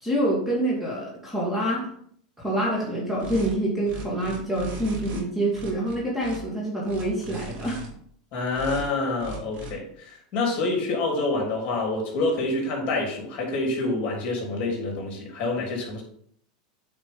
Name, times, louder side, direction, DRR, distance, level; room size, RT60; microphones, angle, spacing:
voice 1, 0.0-1.9 2.4-7.8, right 1 dB, 5° right, -4 dB, 2.2 m, -26 dB
sound 1, 3.2-3.5 3.8-5.2 5.5-6.4 6.8-7.9 8.5-8.9 9.2-9.7, right 2 dB, 50° right, 2.5 m, -38 dB
voice 2, 8.3-16.0, left 2 dB, 40° left, -1 dB, 3.6 m, -27 dB
8.8 x 5.0 x 3.8 m, 0.63 s
supercardioid pair, 130°, 4 cm